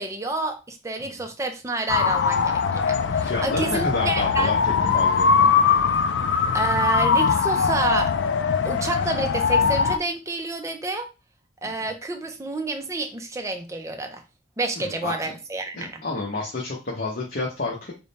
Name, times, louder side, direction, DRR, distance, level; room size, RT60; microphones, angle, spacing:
voice 1, 0.0-4.6 6.5-8.2 8.6-11.1 11.6-14.2 14.6-16.0, right 2 dB, 15° right, 0.5 m, -29 dB
sound 1, 1.9-10.0, left 6 dB, 70° left, 0.4 m, -21 dB
voice 2, 3.2-5.5 14.8-15.3 15.7-17.9, left 3 dB, 50° left, 0.9 m, -30 dB
3.5 x 2.2 x 4.0 m
head